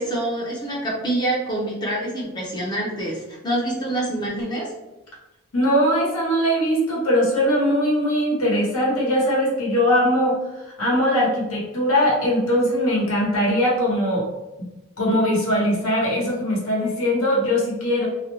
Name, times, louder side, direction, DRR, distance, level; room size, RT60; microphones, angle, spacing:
voice 1, 0.0-4.7, right 1 dB, 20° left, -4 dB, 0.5 m, -26 dB
voice 2, 5.5-10.4 10.8-14.3 15.0-18.1, equal, 85° left, -4 dB, 0.9 m, -20 dB
2.4 x 2.1 x 3.0 m, 1.1 s
head